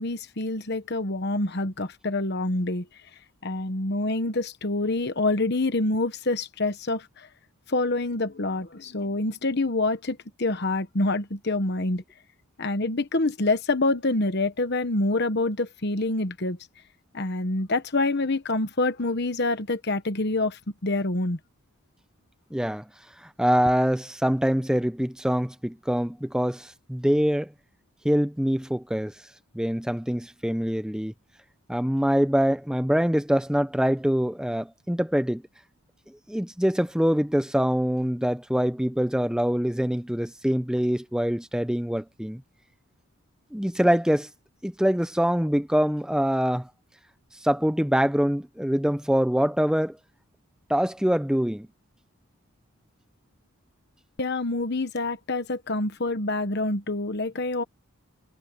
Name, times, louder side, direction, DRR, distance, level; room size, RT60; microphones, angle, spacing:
voice 1, 0.0-2.8 3.4-7.3 7.7-12.0 12.6-16.6 17.1-21.4 54.2-57.6, left 2 dB, 50° left, 1.1 m, -26 dB
voice 2, 22.5-22.9 23.2-27.5 28.0-29.1 29.5-31.1 31.7-35.4 36.3-42.4 43.5-44.3 44.6-46.7 47.4-50.0 50.7-51.7, equal, 5° right, 0.6 m, -24 dB
head